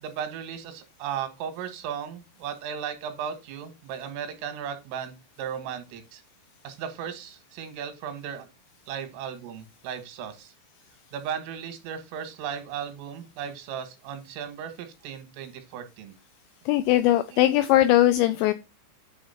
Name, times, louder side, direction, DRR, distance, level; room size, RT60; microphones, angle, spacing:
voice 1, 0.0-6.2 6.6-8.5 8.9-10.5 11.1-16.2 17.3-17.6, right 8 dB, 85° right, 8 dB, 4.0 m, -36 dB
voice 2, 16.7-18.5, left 14 dB, 85° left, 11 dB, 2.5 m, -20 dB
9.5 x 3.3 x 5.6 m, 0.26 s
omnidirectional pair, 5.6 m